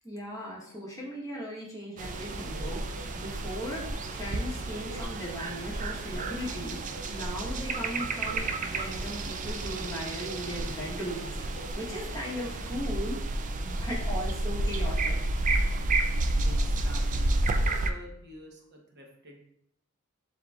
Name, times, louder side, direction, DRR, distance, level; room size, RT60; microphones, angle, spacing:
voice 1, 0.0-6.8 7.1-13.2 13.6-15.2, equal, 15° left, -4 dB, 1.1 m, -38 dB
sound 1, 2.0-12.7, equal, 50° left, 0.9 m, -48 dB
sound 2, 2.0-17.9, right 2 dB, 40° right, 0.3 m, -31 dB
voice 2, 16.4-17.3 17.6-19.4, equal, 55° right, 0 dB, 0.9 m, -48 dB
7.5 x 2.6 x 2.3 m, 0.75 s
head